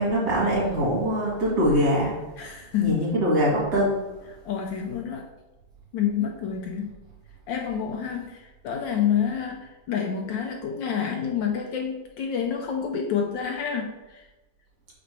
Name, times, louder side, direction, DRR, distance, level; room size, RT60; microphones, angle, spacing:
voice 1, 0.0-2.1 2.8-4.0, equal, 40° right, -5 dB, 2.6 m, -23 dB
voice 2, 2.4-3.1 4.3-5.3 5.9-6.9 7.5-14.3, left 8 dB, 70° left, 2 dB, 1.1 m, -28 dB
5.1 x 4.3 x 4.6 m, 1.1 s
omnidirectional pair, 2.4 m